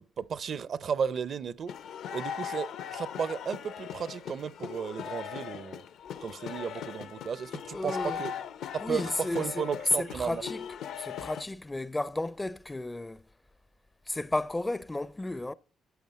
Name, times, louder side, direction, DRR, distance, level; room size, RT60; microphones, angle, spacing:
voice 1, 0.0-1.7 2.1-5.8 6.2-8.3 8.7-10.4, right 6 dB, 55° right, 0.5 m, -34 dB
sound 1, 1.7-11.4, left 8 dB, 75° left, 0.7 m, -39 dB
voice 2, 7.7-8.2 8.8-9.6 10.0-10.6 11.0-13.2 14.1-15.5, left 2 dB, 15° left, 0.4 m, -33 dB
14.0 x 9.1 x 4.1 m
cardioid pair, 90°, 0 cm